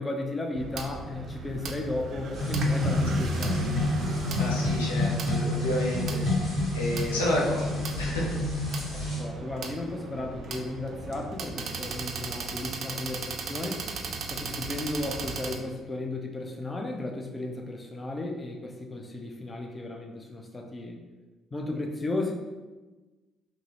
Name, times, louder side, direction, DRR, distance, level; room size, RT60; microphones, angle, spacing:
voice 1, 0.0-3.8 9.1-13.9 14.3-21.0 21.5-22.3, left 2 dB, 25° left, 2 dB, 0.5 m, -34 dB
sound 1, 0.5-15.6, right 4 dB, 60° right, 0.4 m, -37 dB
sound 2, 2.3-9.2, left 2 dB, 65° left, 1.3 m, -28 dB
voice 2, 4.3-8.4, left 1 dB, 90° left, -3 dB, 0.5 m, -31 dB
3.6 x 2.0 x 2.8 m, 1.2 s
hypercardioid pair, 50°, 0 cm